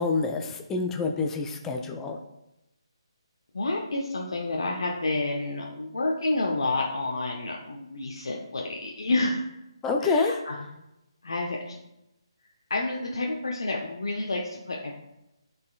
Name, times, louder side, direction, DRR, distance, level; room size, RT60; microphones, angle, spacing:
voice 1, 0.0-2.2 9.8-10.3, left 4 dB, 10° left, 3 dB, 0.5 m, -27 dB
voice 2, 3.5-9.5 10.0-10.7 11.2-11.8 12.7-14.9, left 2 dB, 65° left, -1 dB, 0.9 m, -29 dB
12.5 x 4.4 x 2.4 m, 0.89 s
figure-of-eight pair, 145°, 3 cm